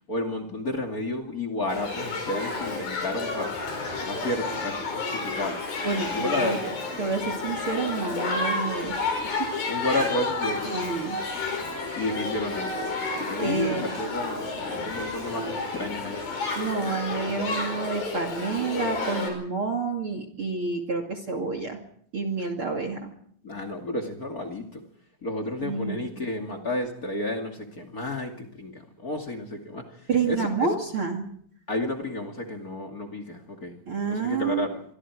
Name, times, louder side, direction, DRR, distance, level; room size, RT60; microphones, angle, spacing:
voice 1, 0.1-3.6 4.1-5.6 6.1-6.8 9.7-10.7 12.0-16.2 23.4-24.8 25.2-30.5 31.7-33.8 34.1-34.8, left 1 dB, 30° left, 7 dB, 2.4 m, -31 dB
Shout / Human group actions, 1.7-19.3, left 3 dB, 70° left, 7.0 m, -31 dB
voice 2, 5.8-6.6 7.0-9.0 9.4-9.5 10.6-11.2 13.4-13.8 16.5-21.8 22.1-23.1 25.6-26.1 30.1-31.3 33.9-34.7, right 4 dB, 40° right, 7 dB, 2.8 m, -29 dB
26.0 x 24.0 x 4.8 m, 0.62 s
omnidirectional pair, 4.4 m